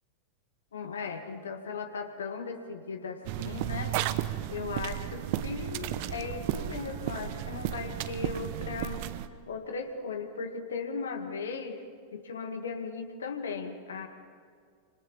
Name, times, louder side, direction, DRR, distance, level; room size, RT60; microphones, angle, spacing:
voice 1, 0.7-4.0 4.5-9.0 9.5-11.8 12.1-14.1, left 5 dB, 70° left, 5 dB, 2.2 m, -37 dB
sound 1, 3.2-9.3, right 13 dB, 45° right, 1.0 m, -34 dB
Bowed string instrument, 5.0-9.9, right 4 dB, 75° right, 3.7 m, -50 dB
27.0 x 26.5 x 7.1 m, 2.2 s
figure-of-eight pair, 90°, 0 cm